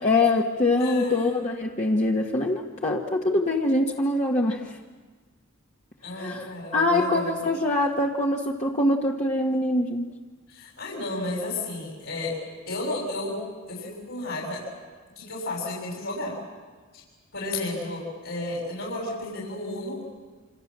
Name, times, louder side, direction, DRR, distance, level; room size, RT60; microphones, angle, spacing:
voice 1, 0.0-4.8 6.1-10.1, left 2 dB, 35° left, -2 dB, 1.6 m, -24 dB
voice 2, 0.8-1.4 6.0-7.4 10.5-12.3 12.7-13.4 13.7-14.6 15.2-16.4 16.9-17.0 17.3-20.0, left 2 dB, 70° left, -3 dB, 7.0 m, -32 dB
27.5 x 27.0 x 7.6 m, 1.4 s
head